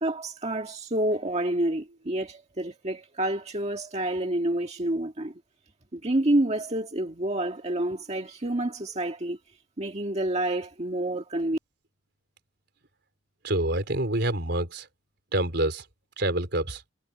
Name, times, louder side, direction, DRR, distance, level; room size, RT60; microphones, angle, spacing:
voice 1, 0.0-5.3 5.9-9.4 9.8-11.6, right 1 dB, 35° right, 1.7 m, -28 dB
voice 2, 13.4-14.9 15.3-15.8 16.2-16.8, right 1 dB, 65° right, 4.5 m, -27 dB
head